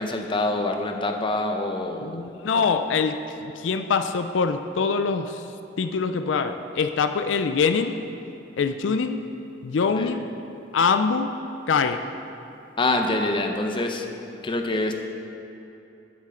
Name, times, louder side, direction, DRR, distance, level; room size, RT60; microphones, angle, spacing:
voice 1, 0.0-2.2 2.5-2.7 10.0-10.1 12.8-14.1 14.4-14.9, left 2 dB, 30° left, 4 dB, 0.7 m, -25 dB
voice 2, 2.0-5.5 5.8-8.0 8.6-9.2 9.6-10.3 10.7-11.3 11.7-12.0, left 5 dB, 85° left, 9 dB, 0.4 m, -24 dB
13.0 x 7.4 x 3.8 m, 2.9 s
head